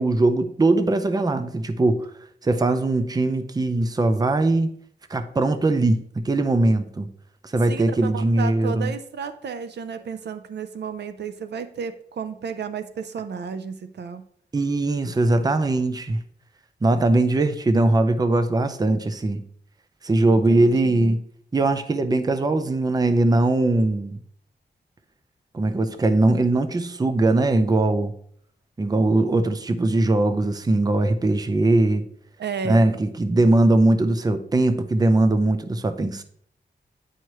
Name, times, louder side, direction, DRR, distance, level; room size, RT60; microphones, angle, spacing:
voice 1, 0.0-2.1 2.4-4.7 5.1-7.1 7.4-8.9 14.5-16.2 16.8-19.4 20.0-21.2 21.5-24.2 25.5-28.1 28.8-32.1 32.6-36.2, right 2 dB, 20° right, 0.5 m, -20 dB
voice 2, 7.7-14.2 20.3-21.1 32.4-32.9, right 6 dB, 80° right, 0.5 m, -33 dB
9.2 x 4.7 x 3.0 m
wide cardioid pair, 110°, 18 cm